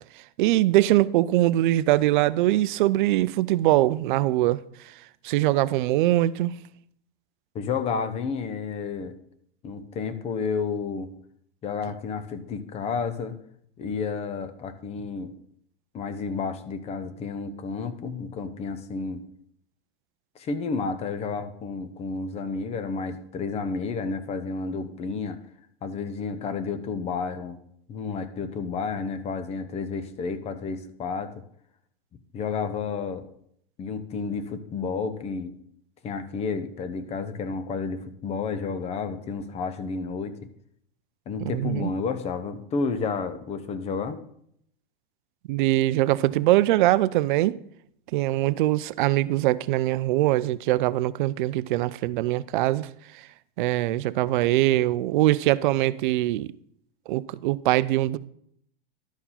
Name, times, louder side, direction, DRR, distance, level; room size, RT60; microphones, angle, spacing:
voice 1, 0.4-4.6 5.2-6.5 41.4-41.9 45.5-47.6 48.1-52.9 53.6-56.5 57.1-58.2, right 16 dB, 60° right, 0.5 m, -22 dB
voice 2, 7.5-9.1 9.6-11.1 11.6-13.4 13.8-15.3 15.9-19.2 20.4-25.4 25.8-27.6 27.9-31.3 32.3-33.3 33.8-35.5 36.0-40.4 41.3-44.2, left 5 dB, 20° left, 0.7 m, -31 dB
11.5 x 4.7 x 5.6 m
supercardioid pair, 145°, 29 cm